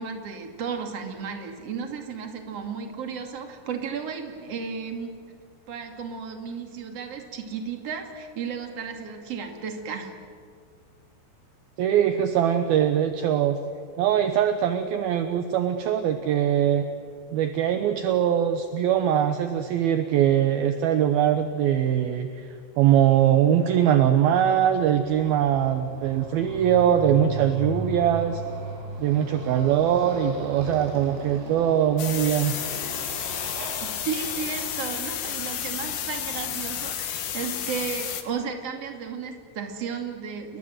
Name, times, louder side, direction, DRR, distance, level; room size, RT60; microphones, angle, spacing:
voice 1, 0.0-5.1 5.7-10.2 34.0-40.6, right 6 dB, 40° right, 4 dB, 2.7 m, -34 dB
voice 2, 11.8-13.6 14.0-16.9 17.3-22.5 22.8-28.4 29.0-32.5, right 10 dB, 75° right, 8 dB, 2.3 m, -22 dB
Motorcycle, 24.2-36.9, right 1 dB, 90° right, 7.1 m, -39 dB
sound 1, 32.0-38.2, left 10 dB, 60° left, 2.8 m, -31 dB
29.5 x 22.0 x 7.9 m, 2.1 s
omnidirectional pair, 5.5 m